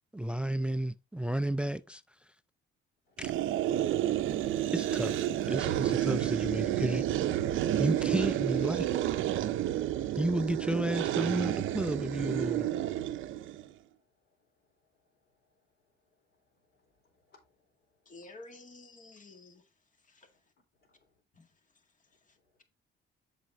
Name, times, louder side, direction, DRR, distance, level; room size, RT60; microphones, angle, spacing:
voice 1, 0.1-2.0 3.2-3.3 4.7-7.0 7.8-8.9 10.2-12.7, right 1 dB, 5° right, 0.4 m, -32 dB
sound 1, 3.2-13.7, right 12 dB, 85° right, 0.6 m, -30 dB
voice 2, 16.5-17.7 18.2-18.3 20.3-20.4 20.8-21.1, left 3 dB, 65° left, 4.0 m, -69 dB
voice 3, 18.1-19.6, left 2 dB, 40° left, 1.8 m, -50 dB
7.5 x 5.7 x 3.8 m
cardioid pair, 90°, 20 cm